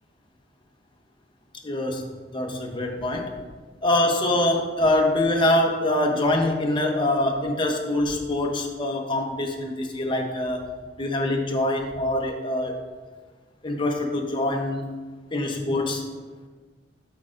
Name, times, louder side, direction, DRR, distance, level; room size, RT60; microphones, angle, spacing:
voice 1, 1.6-2.1 2.3-3.3 3.8-10.7 11.0-12.8 13.6-14.9 15.3-16.0, left 1 dB, 25° left, 2 dB, 0.7 m, -24 dB
8.7 x 6.2 x 2.5 m, 1.4 s
head